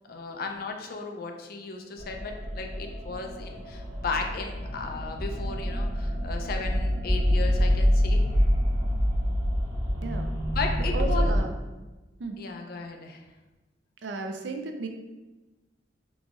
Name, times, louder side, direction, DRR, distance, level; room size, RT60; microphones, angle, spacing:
voice 1, 0.1-8.2 10.5-11.3 12.4-13.2, left 4 dB, 55° left, 3 dB, 0.4 m, -35 dB
sound 1, 2.0-11.4, equal, 40° right, 1.2 m, -26 dB
voice 2, 10.9-11.5 12.2-12.4 14.0-14.9, right 3 dB, 75° right, 4 dB, 0.4 m, -33 dB
3.9 x 2.9 x 2.4 m, 1.1 s
head